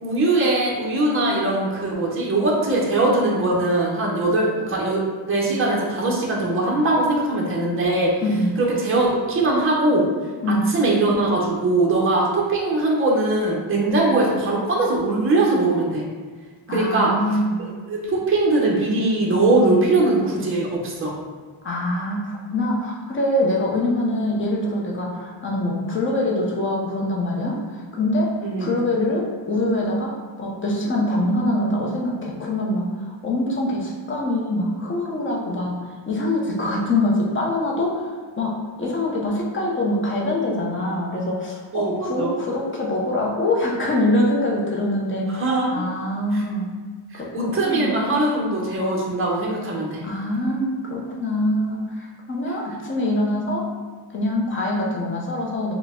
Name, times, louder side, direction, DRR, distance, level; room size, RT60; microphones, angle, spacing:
voice 1, 0.0-8.1 8.6-10.1 10.7-16.1 16.7-17.1 17.6-21.1 28.4-28.7 41.7-42.4 45.3-45.8 46.3-46.4 47.1-50.0, right 2 dB, 25° right, -3 dB, 0.7 m, -21 dB
voice 2, 8.2-8.5 10.4-10.7 16.7-17.6 21.6-28.3 28.6-35.8 36.1-38.1 38.4-45.3 45.7-46.7 47.1-47.9 50.0-53.7 54.1-55.7, left 1 dB, 25° left, -2 dB, 0.6 m, -24 dB
4.6 x 2.1 x 3.5 m, 1.5 s
wide cardioid pair, 165°, 48 cm